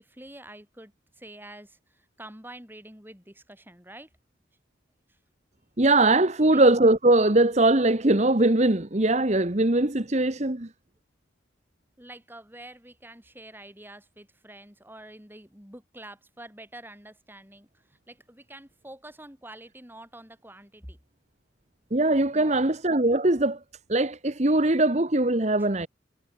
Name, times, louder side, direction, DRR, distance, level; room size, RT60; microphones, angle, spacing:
voice 1, 0.0-4.1 5.1-5.2 6.4-6.6 12.0-21.0 22.3-22.7 25.6-25.7, right 1 dB, 10° right, 6.5 m, -47 dB
voice 2, 5.8-10.7 21.9-23.6 23.9-25.9, right 2 dB, 35° right, 1.3 m, -21 dB
head